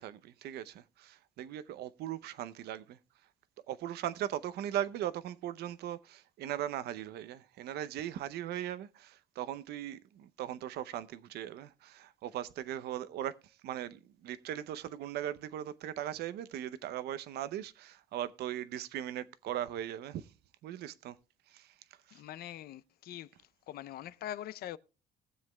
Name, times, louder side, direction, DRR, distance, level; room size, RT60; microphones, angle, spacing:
voice 1, 0.0-3.0 3.7-13.3 13.6-20.3 20.6-21.2 21.5-21.7 22.1-22.2, right 11 dB, 70° right, 0.7 m, -39 dB
voice 2, 22.1-23.3 23.7-24.8, left 12 dB, 65° left, 0.5 m, -43 dB
20.5 x 7.4 x 2.2 m
cardioid pair, 110°, 17 cm